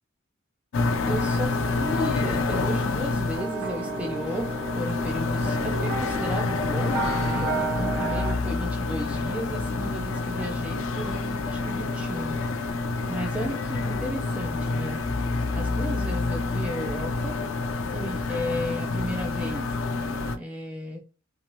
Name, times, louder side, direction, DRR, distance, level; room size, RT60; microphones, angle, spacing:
sound 1, 0.7-20.4, left 3 dB, 75° left, 0.4 m, -28 dB
voice 1, 1.0-12.4 13.1-15.0 15.5-17.4 17.8-19.7 20.4-21.0, equal, 5° right, 0.5 m, -34 dB
sound 2, 3.3-8.3, right 3 dB, 55° right, 0.7 m, -32 dB
3.0 x 2.4 x 2.7 m
head